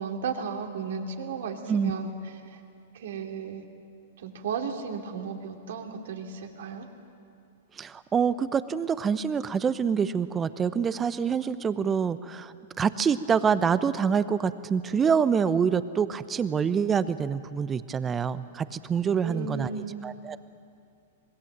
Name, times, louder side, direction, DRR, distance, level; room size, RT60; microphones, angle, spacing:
voice 1, 0.0-2.1 2.5-2.6 2.9-3.6 4.2-6.9 19.2-20.0, right 6 dB, 70° right, 3 dB, 2.8 m, -34 dB
voice 2, 7.8-20.4, right 6 dB, 20° right, 14 dB, 0.9 m, -26 dB
26.0 x 21.0 x 7.5 m, 2.5 s
hypercardioid pair, 110°, 0 cm